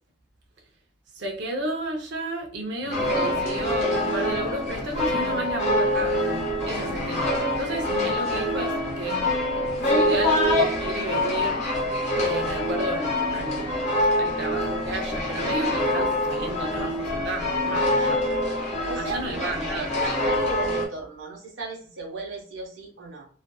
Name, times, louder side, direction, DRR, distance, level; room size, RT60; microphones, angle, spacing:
voice 1, 1.1-6.2 6.7-7.3 7.6-9.2 9.6-11.7 12.2-13.7 14.2-18.2 19.0-20.0, right 1 dB, 65° right, 1 dB, 0.6 m, -32 dB
Human voice, 2.8-3.5 3.8-4.3 4.8-5.5 5.8-6.5 6.8-7.5 7.8-8.2 8.8-9.3 9.8-10.3, left 3 dB, 75° left, 0.4 m, -41 dB
sound 1, 2.9-20.9, left 1 dB, 35° left, 0.7 m, -25 dB
voice 2, 18.8-23.3, right 4 dB, 85° right, 0 dB, 0.9 m, -36 dB
2.5 x 2.4 x 2.2 m, 0.44 s
head